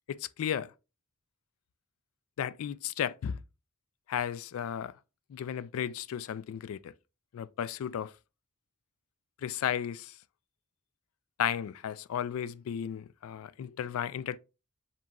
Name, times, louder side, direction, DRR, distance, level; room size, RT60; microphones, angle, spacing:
voice 1, 0.1-0.7 2.4-3.4 4.1-4.9 5.3-6.9 7.3-8.1 9.4-10.2 11.4-14.4, left 9 dB, 85° left, 0.3 m, -34 dB
7.2 x 2.9 x 2.3 m
head